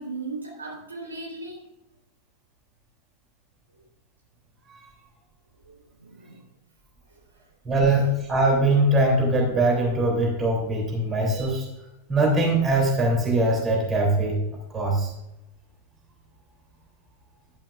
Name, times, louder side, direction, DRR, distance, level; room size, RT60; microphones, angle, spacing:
voice 1, 0.0-1.6 5.6-6.4, right 3 dB, 75° right, -1 dB, 3.9 m, -37 dB
voice 2, 7.6-11.7 12.1-14.4 14.7-15.1, right 2 dB, 20° right, -1 dB, 3.2 m, -22 dB
11.0 x 11.0 x 2.5 m, 0.89 s
figure-of-eight pair, 90°, 0 cm